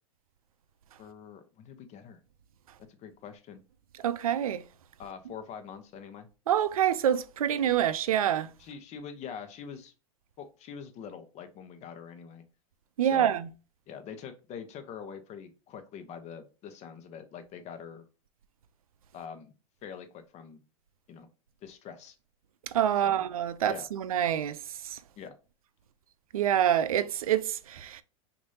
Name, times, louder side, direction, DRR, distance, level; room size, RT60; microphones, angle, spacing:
voice 1, 1.0-2.2 2.9-3.6 5.0-6.3 8.6-9.9 10.4-12.4 13.0-13.3 13.9-18.1 19.1-19.5 19.8-20.6 21.1-21.3 21.6-22.1 23.0-23.2 23.7-23.9 25.2-25.3, left 7 dB, 40° left, 0.9 m, -44 dB
voice 2, 4.0-4.6 6.5-8.5 13.0-13.5 22.7-24.6 24.8-25.0 26.3-28.0, right 10 dB, 85° right, 0.4 m, -26 dB
6.1 x 2.6 x 2.7 m
hypercardioid pair, 100°, 18 cm